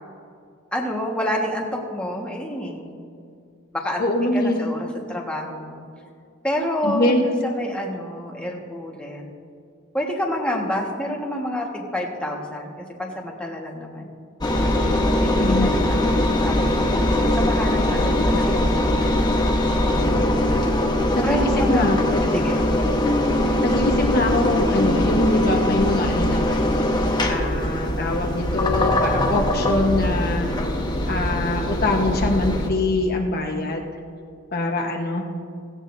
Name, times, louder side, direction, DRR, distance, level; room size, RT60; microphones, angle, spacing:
voice 1, 0.7-2.9 3.7-4.0 4.3-5.8 6.4-9.3 9.9-12.7 13.0-14.1 15.0-18.8 19.8-20.3 21.2-21.9 22.3-22.7, equal, 5° left, -1 dB, 1.4 m, -28 dB
voice 2, 4.0-4.7 6.8-7.3 15.4-15.7 15.9-16.0 20.1-20.5 21.1-22.4 23.4-26.8 27.3-30.5 31.0-33.9 34.5-35.3, left 2 dB, 50° left, 1 dB, 1.1 m, -24 dB
Engine, 14.4-32.7, left 1 dB, 20° left, 1.1 m, -21 dB
16.5 x 15.5 x 2.6 m, 2.3 s
head